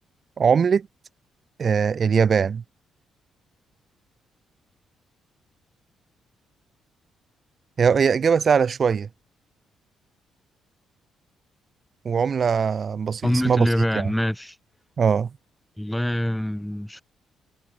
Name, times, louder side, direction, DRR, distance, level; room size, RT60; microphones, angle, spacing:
voice 1, 0.4-0.8 1.6-2.6 7.8-9.1 12.0-13.7 13.9-14.1 15.0-15.3, right 6 dB, 45° right, 1.3 m, -20 dB
voice 2, 13.2-14.6 15.8-17.0, left 1 dB, 5° left, 3.9 m, -24 dB
cardioid pair, 90°, 0 cm